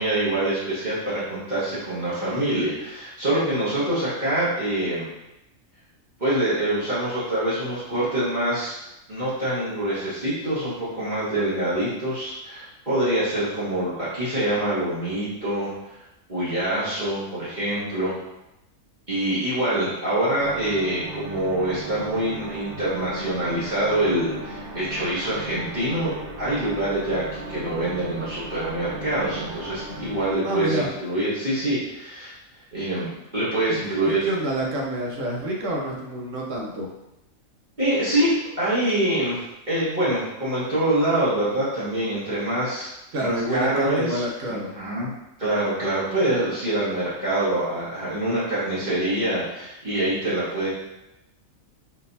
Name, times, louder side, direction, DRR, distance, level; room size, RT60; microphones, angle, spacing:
voice 1, 0.0-5.1 6.2-8.7 9.1-15.7 16.3-18.1 19.1-32.3 32.7-34.3 37.8-42.9 43.2-44.2 44.5-45.1 45.4-50.7, right 1 dB, 35° right, -12 dB, 1.5 m, -25 dB
sound 1, 20.4-30.3, right 2 dB, 90° right, 1.2 m, -37 dB
voice 2, 30.4-30.9 33.7-36.9 43.1-44.7, right 1 dB, 70° right, -1 dB, 1.2 m, -28 dB
4.0 x 3.8 x 2.7 m, 0.92 s
omnidirectional pair, 1.4 m